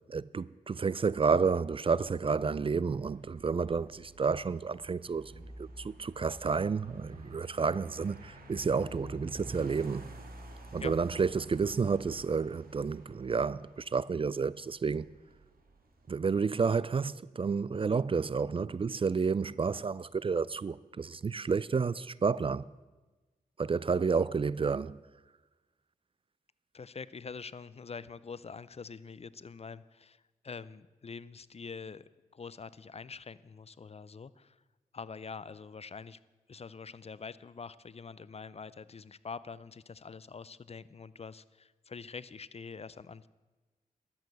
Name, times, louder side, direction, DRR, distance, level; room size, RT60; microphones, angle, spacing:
voice 1, 0.1-10.1 10.7-15.1 16.1-22.6 23.6-25.0, right 5 dB, 35° right, 0.4 m, -30 dB
sound 1, 1.6-16.3, right 1 dB, 65° right, 2.1 m, -51 dB
voice 2, 26.7-32.0 32.3-34.6 34.9-36.2 36.5-43.3, left 5 dB, 40° left, 0.5 m, -45 dB
11.5 x 8.2 x 7.7 m
supercardioid pair, 40°, 16 cm